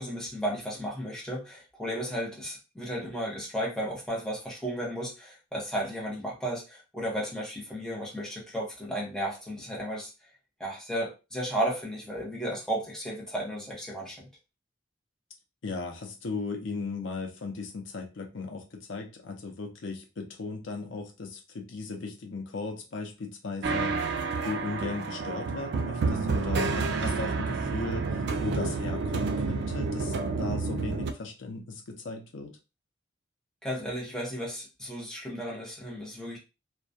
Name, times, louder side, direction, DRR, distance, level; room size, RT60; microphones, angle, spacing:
voice 1, 0.0-10.1 10.6-14.2 33.6-36.4, right 1 dB, 5° left, -4 dB, 0.8 m, -34 dB
voice 2, 15.6-24.1 24.4-32.5, left 3 dB, 85° left, 3 dB, 0.6 m, -37 dB
sound 1, 23.6-31.1, right 4 dB, 60° right, 0.3 m, -29 dB
2.2 x 2.2 x 2.6 m, 0.29 s
head